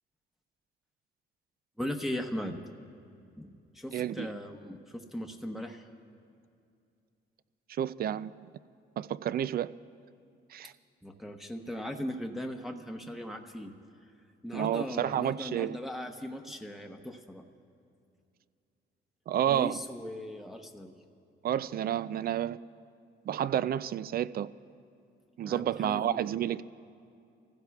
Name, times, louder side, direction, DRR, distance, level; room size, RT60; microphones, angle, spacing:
voice 1, 1.8-2.6 3.4-5.9 11.0-13.7 14.4-17.4 19.5-20.9 25.4-26.3, left 1 dB, ahead, 0.9 m, -38 dB
voice 2, 3.9-4.3 7.7-8.3 9.0-9.7 10.5-10.7 14.5-15.8 19.3-19.8 21.4-22.6 23.3-24.5 25.4-26.6, right 11 dB, 50° right, 0.4 m, -30 dB
26.5 x 15.5 x 2.3 m
cardioid pair, 90°, 20 cm